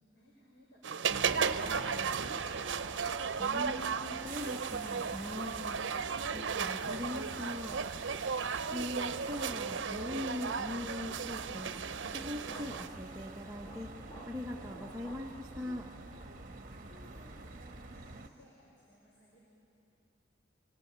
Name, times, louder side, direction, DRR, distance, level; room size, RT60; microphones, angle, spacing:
voice 1, 0.1-2.3 16.8-19.5, equal, 75° left, -6 dB, 5.1 m, -62 dB
sound 1, 0.8-12.9, right 6 dB, 80° right, 0.6 m, -35 dB
sound 2, 1.1-18.3, right 2 dB, 45° right, 1.1 m, -48 dB
voice 2, 3.4-6.0 6.3-7.8 8.7-11.7 12.1-14.0 14.3-15.9, left 1 dB, 15° right, -1 dB, 0.9 m, -41 dB
sound 3, 11.8-13.0 13.3-15.3 15.7-15.9 16.3-16.6 17.0-17.1 17.4-17.6, right 1 dB, 20° left, 1.5 m, -54 dB
25.5 x 19.5 x 8.7 m, 2.9 s
head